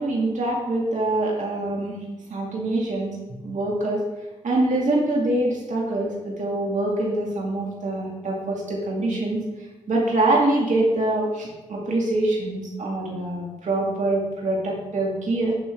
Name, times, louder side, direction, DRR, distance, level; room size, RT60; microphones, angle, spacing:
voice 1, 0.0-2.0 2.3-4.0 4.4-15.6, right 2 dB, 55° right, -2 dB, 2.4 m, -24 dB
12.5 x 6.2 x 3.6 m, 1.1 s
hypercardioid pair, 40°, 15 cm